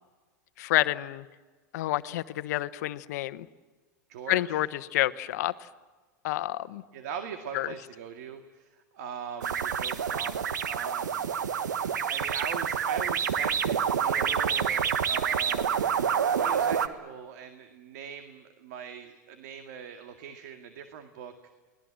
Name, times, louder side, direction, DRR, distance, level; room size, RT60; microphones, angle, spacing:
voice 1, 0.6-1.2 1.7-3.5 4.3-5.5 6.2-6.8 7.5-7.7, left 16 dB, 65° left, 13 dB, 1.1 m, -29 dB
voice 2, 4.1-4.6 6.9-10.4 10.7-11.3 12.0-15.8 16.4-21.5, right 7 dB, 65° right, 7 dB, 2.1 m, -41 dB
sound 1, 9.4-16.9, right 7 dB, 85° right, 1.4 m, -28 dB
29.5 x 20.0 x 7.6 m, 1.3 s
hypercardioid pair, 105°, 10 cm